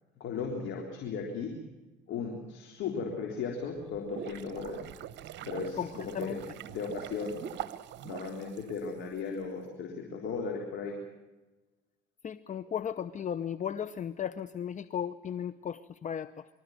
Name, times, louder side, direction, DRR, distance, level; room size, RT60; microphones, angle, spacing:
voice 1, 0.2-1.5 2.1-4.8 5.4-6.4 6.7-7.4 8.0-11.0, left 5 dB, 60° left, 1 dB, 3.7 m, -36 dB
sound 1, 3.8-9.2, right 11 dB, 55° right, 1.1 m, -43 dB
voice 2, 5.8-6.4 12.2-16.5, left 9 dB, 35° left, 15 dB, 0.8 m, -36 dB
24.5 x 14.0 x 9.3 m, 1.1 s
supercardioid pair, 80°, 21 cm